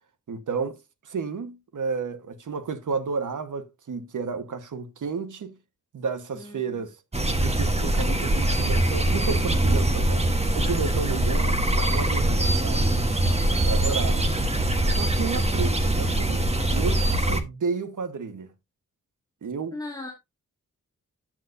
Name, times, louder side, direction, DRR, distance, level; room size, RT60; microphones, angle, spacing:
voice 1, 0.3-0.8 1.0-5.6 5.9-7.0 7.4-10.3 10.5-13.2 13.6-14.3 14.9-18.5 19.4-19.7, right 5 dB, 90° right, 1.3 m, -32 dB
voice 2, 6.3-6.8 13.4-14.8 19.7-20.2, left 2 dB, 15° left, 2.2 m, -41 dB
sound 1, 7.1-17.4, right 1 dB, 20° right, 1.3 m, -23 dB
10.5 x 8.1 x 2.6 m
wide cardioid pair, 95°, 30 cm